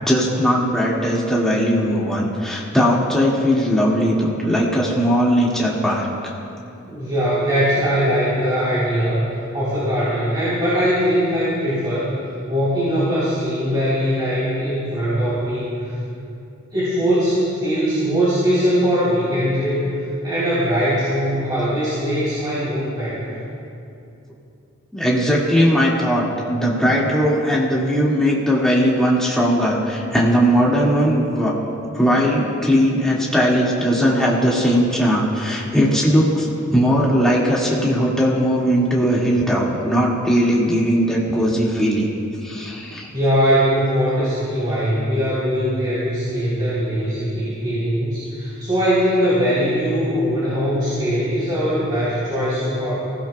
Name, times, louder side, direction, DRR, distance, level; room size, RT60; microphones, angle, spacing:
voice 1, 0.0-6.1 24.9-31.5 31.9-42.1 42.4-43.1, equal, 5° left, -6 dB, 2.0 m, -19 dB
voice 2, 6.9-9.3 9.5-12.1 12.5-16.0 16.7-19.9 20.2-23.3 43.1-52.9, equal, 20° right, -10 dB, 3.7 m, -21 dB
25.5 x 16.0 x 2.3 m, 2.6 s
head